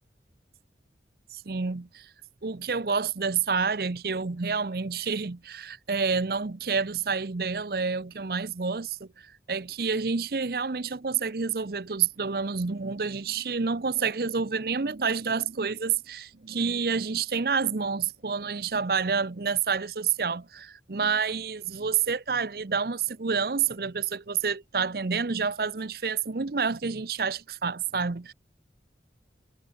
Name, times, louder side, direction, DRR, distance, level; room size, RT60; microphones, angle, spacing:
voice 1, 1.3-2.1 2.4-28.3, right 5 dB, 55° right, 0.7 m, -28 dB
head